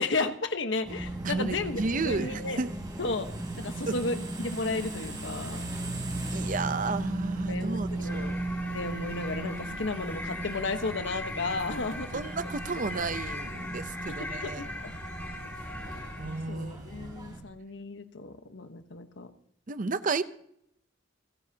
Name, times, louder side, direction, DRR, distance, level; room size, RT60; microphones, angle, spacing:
voice 1, 0.0-2.6 3.0-3.3 3.6-5.6 7.5-8.4 8.7-12.1 14.4-14.9 16.5-19.3, left 3 dB, 80° left, 1.2 m, -33 dB
sound 1, 0.8-17.4, right 1 dB, 25° right, 3.7 m, -37 dB
voice 2, 1.2-2.7 3.9-4.0 6.3-8.4 12.1-14.6 16.2-17.1 19.7-20.2, right 4 dB, 45° right, 0.7 m, -32 dB
sound 2, 8.0-16.6, left 1 dB, 10° left, 3.3 m, -40 dB
29.5 x 10.5 x 2.8 m
head